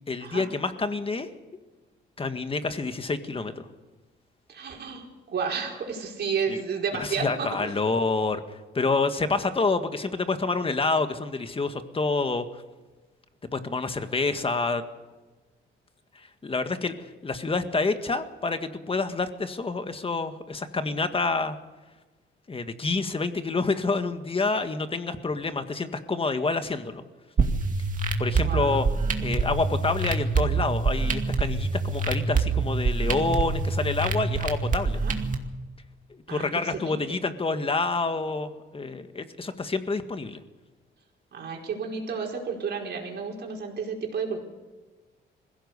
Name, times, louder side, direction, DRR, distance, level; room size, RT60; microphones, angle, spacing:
voice 1, 0.1-1.3 2.2-3.7 6.5-6.6 6.9-12.5 13.5-14.8 16.4-16.9 17.2-21.6 22.5-27.0 28.2-28.9 29.2-35.0 36.1-40.4, left 3 dB, 30° left, 9 dB, 1.8 m, -28 dB
voice 2, 4.5-5.1 5.3-7.7 28.4-28.9 34.9-35.1 36.3-37.0 41.3-44.4, right 6 dB, 60° right, 0 dB, 4.7 m, -32 dB
sound 1, 27.4-35.4, right 4 dB, 40° right, 2.3 m, -26 dB
21.0 x 16.0 x 8.3 m, 1.2 s
cardioid pair, 90°, 20 cm